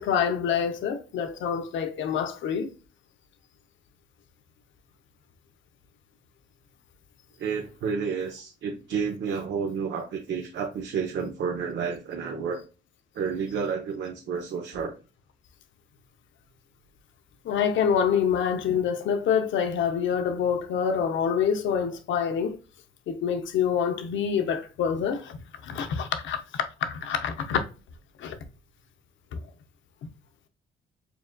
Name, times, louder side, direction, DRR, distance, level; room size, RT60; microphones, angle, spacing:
voice 1, 0.0-2.7 17.4-22.6 23.1-25.4 25.6-27.6 28.2-28.4 29.3-29.4, left 7 dB, 75° left, 0.7 m, -26 dB
voice 2, 7.4-12.6 13.1-14.9, right 6 dB, 65° right, 0.8 m, -30 dB
6.8 x 2.5 x 2.2 m
cardioid pair, 90°, 20 cm